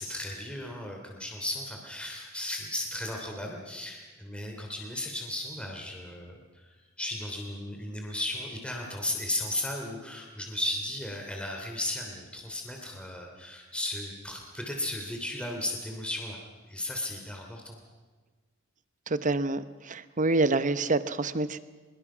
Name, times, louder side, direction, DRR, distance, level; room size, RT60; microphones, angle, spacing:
voice 1, 0.0-16.4 16.7-17.8, left 1 dB, 5° left, 1 dB, 3.0 m, -35 dB
voice 2, 19.1-21.6, right 2 dB, 40° right, 13 dB, 0.9 m, -27 dB
23.5 x 22.0 x 6.2 m, 1.4 s
head